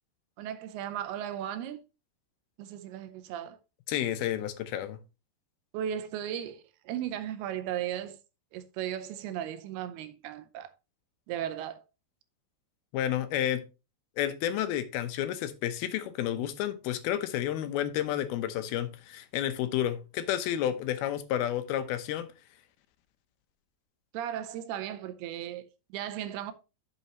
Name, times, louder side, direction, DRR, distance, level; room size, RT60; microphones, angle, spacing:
voice 1, 0.4-1.8 2.6-3.6 5.7-8.2 8.5-10.7 11.3-11.8 24.1-26.5, right 10 dB, 80° right, 2.6 m, -36 dB
voice 2, 3.9-5.0 12.9-13.6 14.2-22.3, left 11 dB, 75° left, 2.6 m, -31 dB
11.5 x 6.5 x 3.0 m
omnidirectional pair, 4.7 m